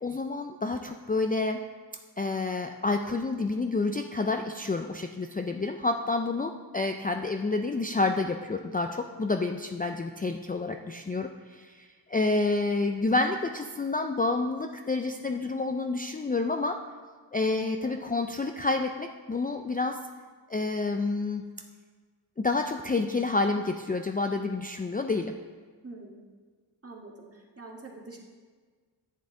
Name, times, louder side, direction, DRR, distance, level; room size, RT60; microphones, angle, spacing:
voice 1, 0.0-1.6 2.2-16.8 17.3-20.0 20.5-21.5 22.4-25.3, left 3 dB, 20° left, 5 dB, 0.4 m, -29 dB
voice 2, 12.1-12.4 25.8-26.2 26.8-28.2, right 3 dB, 30° right, -1 dB, 1.7 m, -46 dB
10.5 x 7.5 x 3.8 m, 1.5 s
wide cardioid pair, 70°, 44 cm